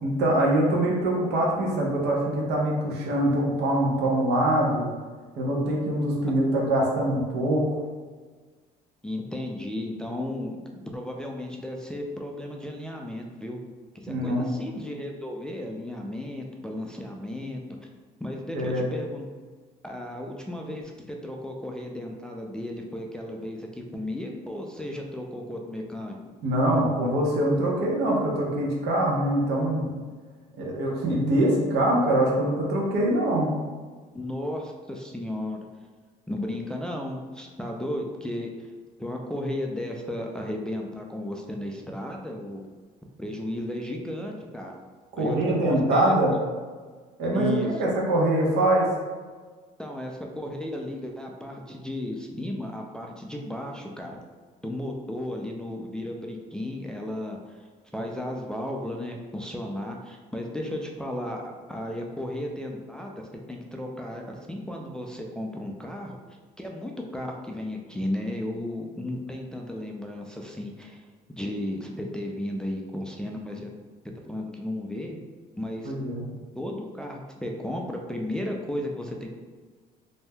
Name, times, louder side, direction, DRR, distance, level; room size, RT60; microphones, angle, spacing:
voice 1, 0.0-4.9 5.4-7.6 14.1-14.5 18.5-18.8 26.4-30.0 30.6-33.5 45.2-46.3 47.2-48.9 75.8-76.2, right 1 dB, 80° right, -2 dB, 0.8 m, -24 dB
voice 2, 9.0-10.6 10.9-13.6 14.0-17.6 18.2-19.3 19.8-26.2 34.1-35.6 36.3-38.7 39.0-42.6 43.2-44.7 45.2-46.1 47.3-47.7 49.8-54.2 54.6-66.2 66.6-71.0 71.3-73.7 74.3-75.2 75.6-76.0 76.5-79.3, left 1 dB, 5° left, 0 dB, 0.3 m, -34 dB
2.6 x 2.2 x 3.4 m, 1.4 s
cardioid pair, 110°, 17 cm